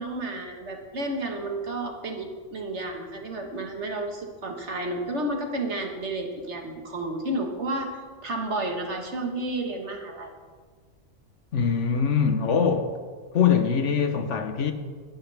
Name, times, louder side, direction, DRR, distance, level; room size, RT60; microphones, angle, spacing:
voice 1, 0.0-10.3, right 1 dB, 65° right, 1.9 m, -31 dB
voice 2, 11.5-12.9 13.3-14.7, left 6 dB, 70° left, 1.3 m, -23 dB
21.0 x 11.0 x 3.5 m
omnidirectional pair, 1.3 m